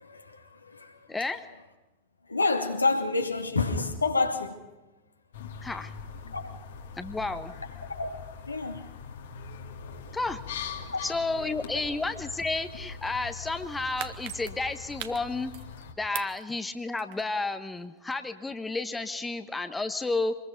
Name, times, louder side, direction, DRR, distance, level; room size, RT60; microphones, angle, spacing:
voice 1, 0.0-1.1 2.3-4.6 6.3-6.5 8.0-8.9 10.9-11.0, left 3 dB, 80° left, 2.7 m, -29 dB
voice 2, 1.1-1.4 5.6-5.9 7.0-7.5 10.1-10.4 11.0-15.5 16.0-20.3, left 3 dB, 10° left, 1.2 m, -31 dB
sound 1, 5.3-15.9, left 6 dB, 60° left, 2.6 m, -42 dB
sound 2, 13.6-15.8 16.1-17.4 17.8-17.9, right 13 dB, 50° right, 1.6 m, -41 dB
26.5 x 21.5 x 5.3 m
figure-of-eight pair, 90°, 0 cm